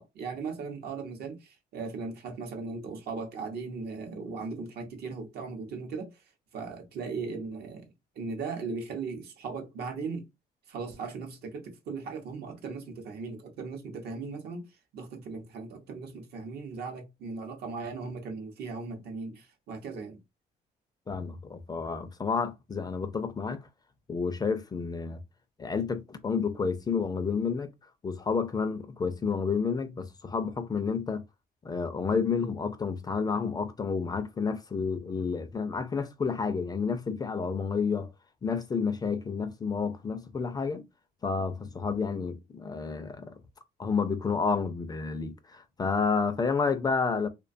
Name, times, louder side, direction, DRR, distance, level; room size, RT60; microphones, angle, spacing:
voice 1, 0.0-6.2 6.5-7.9 8.2-10.3 10.7-14.7 14.9-20.2, right 4 dB, 70° right, 0.7 m, -38 dB
voice 2, 21.1-23.7 24.1-25.2 25.6-27.7 28.0-31.2 31.6-38.1 38.4-40.9 41.2-43.3 43.8-47.3, left 5 dB, 25° left, 0.3 m, -30 dB
2.4 x 2.2 x 2.5 m
cardioid pair, 105°, 17 cm